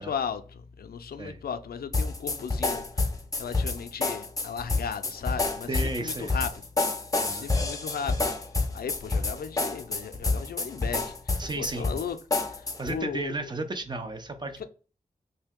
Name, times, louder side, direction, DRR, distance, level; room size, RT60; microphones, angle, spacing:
voice 1, 0.0-3.1 3.3-6.5 7.3-8.4 8.7-12.2 12.4-13.5 14.6-14.7, left 7 dB, 80° left, 0.4 m, -36 dB
sound 1, 1.9-13.0, left 3 dB, 20° left, 0.5 m, -28 dB
voice 2, 5.7-6.4 7.2-7.5 11.4-11.9 12.8-14.7, right 2 dB, 30° right, 0.6 m, -34 dB
3.3 x 2.7 x 3.6 m
wide cardioid pair, 100°, 16 cm